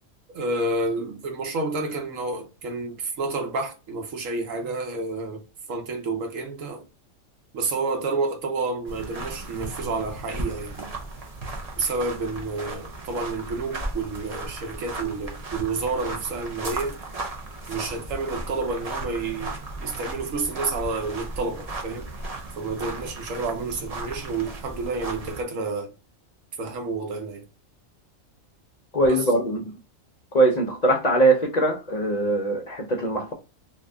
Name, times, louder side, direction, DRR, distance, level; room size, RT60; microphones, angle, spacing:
voice 1, 0.3-5.4 5.7-6.8 7.5-10.9 11.8-17.0 17.7-19.5 19.8-22.1 22.6-25.9 26.6-27.4 29.1-29.3, right 3 dB, 80° right, 1.3 m, -29 dB
sound 1, 8.9-25.4, right 2 dB, 35° right, 0.7 m, -36 dB
voice 2, 28.9-29.7 30.3-33.3, right 2 dB, 45° left, 0.6 m, -21 dB
2.8 x 2.5 x 3.3 m
omnidirectional pair, 1.3 m